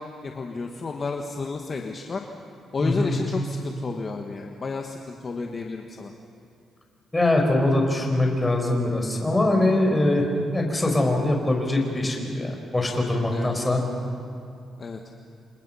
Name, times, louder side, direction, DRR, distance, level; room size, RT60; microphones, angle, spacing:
voice 1, 0.0-2.2 2.7-6.1 13.3-13.7 14.8-15.0, left 4 dB, 35° left, 2 dB, 1.5 m, -32 dB
voice 2, 2.8-3.1 7.1-10.3 10.5-13.8, left 1 dB, 10° left, 1 dB, 4.7 m, -22 dB
29.5 x 26.5 x 5.7 m, 2.5 s
cardioid pair, 135°, 0 cm